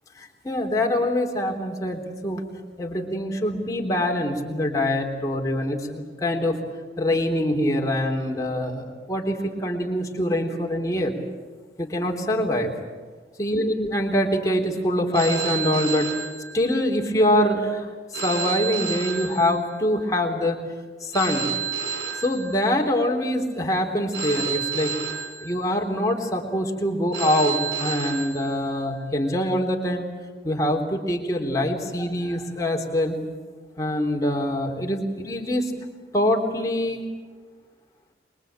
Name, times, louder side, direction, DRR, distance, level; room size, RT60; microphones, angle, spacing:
voice 1, 0.2-2.4 2.8-6.6 7.0-11.1 11.8-12.7 13.4-16.1 16.5-17.9 18.2-20.6 21.0-21.5 22.2-24.9 25.4-30.1 30.4-33.2 33.8-35.7 36.1-37.0, left 1 dB, 20° left, 1 dB, 3.6 m, -24 dB
Telephone, 15.1-17.0 18.1-20.0 21.1-23.0 24.1-26.0 27.1-29.0, right 6 dB, 75° right, 5.0 m, -31 dB
25.0 x 22.5 x 9.0 m, 1.4 s
head